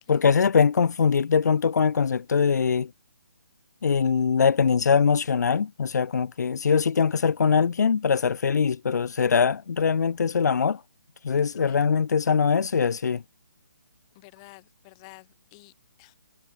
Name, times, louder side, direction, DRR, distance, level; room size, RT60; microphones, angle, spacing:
voice 1, 0.1-2.9 3.8-10.8 11.2-13.2, left 6 dB, 90° left, 0.4 m, -22 dB
voice 2, 14.1-15.7 16.0-16.1, left 27 dB, 20° left, 2.3 m, -50 dB
hypercardioid pair, 165°, 9 cm